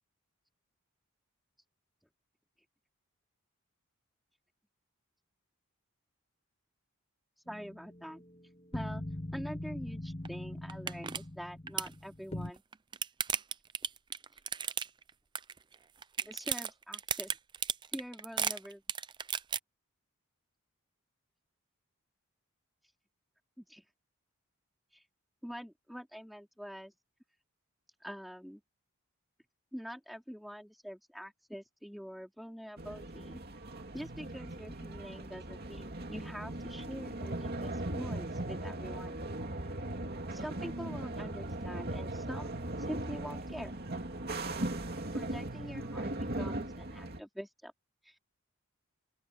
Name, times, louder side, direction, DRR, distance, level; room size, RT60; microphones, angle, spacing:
sound 1, 7.5-12.5, left 1 dB, 25° left, 1.5 m, -42 dB
voice 1, 7.5-8.2 8.7-9.0 9.3-12.6 16.2-17.4 17.9-18.8 23.6-23.8 24.9-25.0 25.4-26.9 28.0-28.6 29.7-33.4 33.9-39.2 40.3-42.5 42.9-43.7 45.1-47.7 48.0-48.2, equal, ahead, 4.7 m, -45 dB
sound 2, 10.3-10.4 10.7-11.2 11.5-11.9 12.6-15.1 15.4-15.8 16.0-19.6, right 8 dB, 20° right, 0.4 m, -34 dB
sound 3, 32.8-47.2, right 1 dB, 45° right, 2.6 m, -39 dB
open air
head